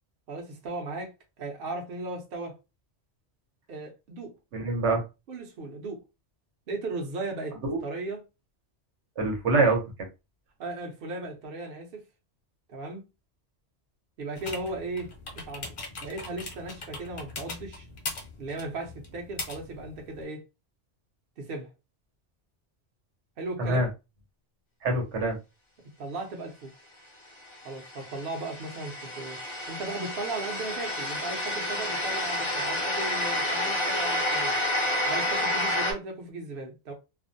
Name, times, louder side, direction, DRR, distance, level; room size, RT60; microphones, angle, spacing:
voice 1, 0.3-1.1 1.4-2.6 3.7-4.3 5.3-6.0 6.7-8.2 10.6-12.0 12.7-13.0 14.2-15.7 16.0-17.9 18.4-20.4 21.4-21.7 23.4-23.9 26.0-26.7 27.6-29.4 29.7-34.5 35.1-36.9, right 2 dB, 60° right, 0.8 m, -36 dB
voice 2, 4.5-5.0 7.6-7.8 9.2-9.8 23.6-23.9 24.8-25.4, right 2 dB, 85° right, 1.1 m, -24 dB
sound 1, 14.4-20.2, left 3 dB, 55° left, 0.9 m, -40 dB
sound 2, 27.5-35.9, left 1 dB, 35° left, 0.5 m, -29 dB
2.5 x 2.0 x 2.6 m
omnidirectional pair, 1.2 m